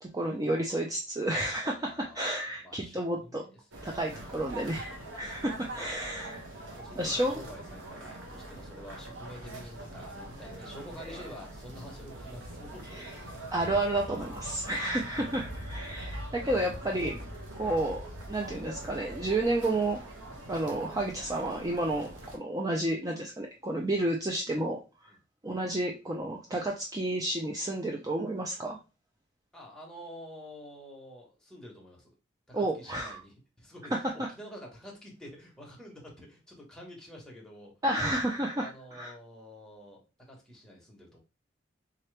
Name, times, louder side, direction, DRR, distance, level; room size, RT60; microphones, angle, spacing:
voice 1, 0.0-3.4 3.8-6.4 7.0-7.4 12.9-13.1 13.5-17.3 17.5-20.0 20.5-25.1 25.4-28.8 32.5-33.2 34.0-34.3 37.8-39.1, right 1 dB, 20° right, 0 dB, 0.5 m, -31 dB
voice 2, 1.6-2.3 2.6-3.6 3.9-4.3 6.7-13.2 25.1-25.2 29.5-32.1 32.5-38.1 38.6-41.2, equal, 5° left, -2 dB, 1.2 m, -48 dB
sound 1, 3.7-22.4, right 1 dB, 85° right, 0.9 m, -43 dB
3.7 x 2.9 x 3.3 m, 0.30 s
head